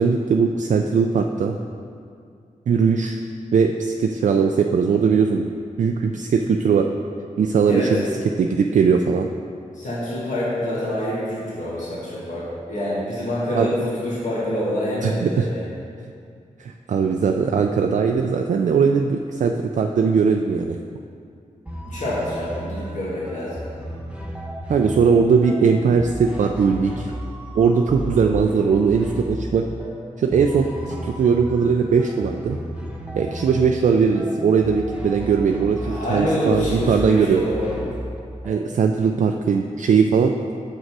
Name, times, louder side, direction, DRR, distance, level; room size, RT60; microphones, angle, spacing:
voice 1, 0.0-1.6 2.7-3.2 3.5-5.5 5.8-6.8 7.4-8.0 8.4-9.3 13.5-13.7 15.0-15.5 16.6-20.8 24.7-27.1 27.6-29.6 30.2-32.6 33.1-37.4 38.4-40.3, right 5 dB, 65° right, 3 dB, 0.4 m, -19 dB
voice 2, 7.7-8.0 9.7-15.7 21.9-23.6 35.8-37.9, left 1 dB, 65° left, -7 dB, 1.9 m, -26 dB
sound 1, 21.7-38.9, right 1 dB, 10° right, 0.9 m, -34 dB
6.4 x 6.3 x 4.7 m, 2.3 s
cardioid pair, 70°, 14 cm